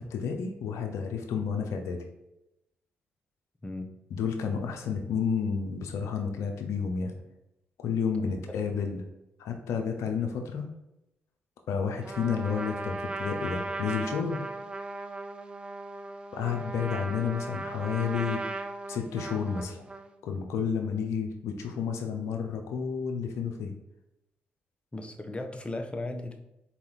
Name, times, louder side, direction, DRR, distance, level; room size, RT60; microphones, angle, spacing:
voice 1, 0.0-2.0 4.1-7.1 7.8-9.1 9.4-10.7 11.7-14.5 16.3-18.4 18.9-19.8 20.2-23.7, left 6 dB, 75° left, 4 dB, 0.5 m, -31 dB
voice 2, 8.2-8.6 24.9-26.4, left 2 dB, 25° left, 5 dB, 0.8 m, -37 dB
Trumpet, 12.0-20.2, right 2 dB, 20° right, 0.6 m, -37 dB
4.0 x 2.9 x 3.9 m, 0.90 s
hypercardioid pair, 45°, 5 cm